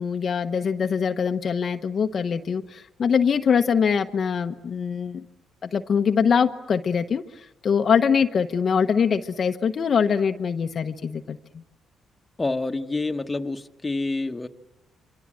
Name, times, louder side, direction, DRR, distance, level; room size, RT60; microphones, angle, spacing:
voice 1, 0.0-5.2 5.6-7.2 7.6-11.4, left 6 dB, 50° left, 6 dB, 1.0 m, -23 dB
voice 2, 12.4-14.5, left 2 dB, 20° left, 5 dB, 1.5 m, -27 dB
27.5 x 25.0 x 7.6 m, 0.96 s
cardioid pair, 90°, 0 cm